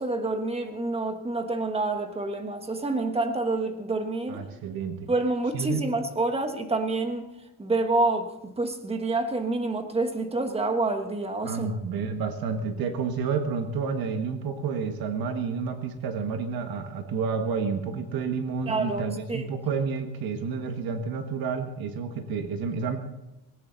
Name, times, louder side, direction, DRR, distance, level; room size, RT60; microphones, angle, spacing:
voice 1, 0.0-4.4 5.1-7.2 7.6-11.7 18.7-19.0 19.3-19.4, right 2 dB, 15° right, 6 dB, 1.4 m, -27 dB
voice 2, 4.3-5.1 5.5-5.8 11.4-23.0, right 5 dB, 65° right, 6 dB, 1.6 m, -30 dB
19.0 x 18.0 x 4.0 m, 0.94 s
cardioid pair, 170°, 39 cm